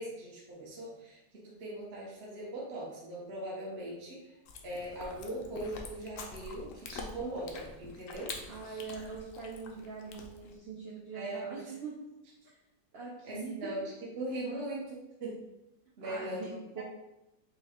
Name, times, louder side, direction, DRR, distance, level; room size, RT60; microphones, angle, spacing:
voice 1, 0.0-4.4 4.6-8.3 8.6-8.8 11.1-11.7 13.2-15.4 16.0-16.4 16.8-16.9, right 1 dB, 45° right, -5 dB, 0.9 m, -40 dB
Chewing mastication, 4.4-10.6, left 4 dB, 65° left, 0.8 m, -46 dB
voice 2, 8.5-12.0 12.9-13.7 16.0-16.8, right 5 dB, 80° right, -3 dB, 0.5 m, -42 dB
5.3 x 2.2 x 3.5 m, 0.94 s
omnidirectional pair, 1.8 m